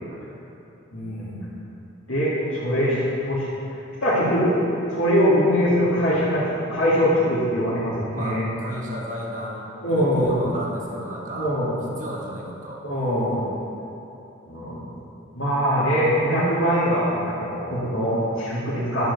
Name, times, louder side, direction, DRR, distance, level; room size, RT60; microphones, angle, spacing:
voice 1, 0.1-0.4 8.1-11.5 12.0-12.8, equal, 40° right, -2 dB, 1.4 m, -34 dB
voice 2, 0.9-1.4 2.1-3.5 4.0-4.6 4.9-6.4 6.7-8.5 9.8-10.3 11.4-11.7 12.8-13.4 14.5-14.8 15.4-19.1, equal, 85° left, -10 dB, 2.4 m, -22 dB
11.0 x 5.0 x 6.7 m, 2.9 s
head